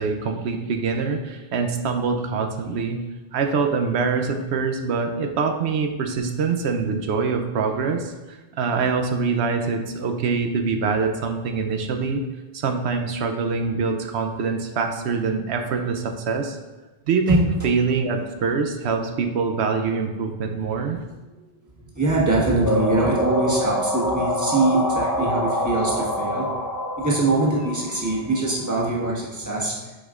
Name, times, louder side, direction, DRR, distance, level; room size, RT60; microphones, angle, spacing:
voice 1, 0.0-3.0 3.3-12.2 12.5-16.6 17.1-21.0, right 5 dB, 90° right, 5 dB, 0.9 m, -24 dB
voice 2, 21.8-26.6 27.0-29.9, right 2 dB, 15° right, -4 dB, 1.5 m, -23 dB
sound 1, 22.7-28.4, equal, 20° left, 0.7 m, -25 dB
10.0 x 5.1 x 2.5 m, 1.2 s
omnidirectional pair, 1.1 m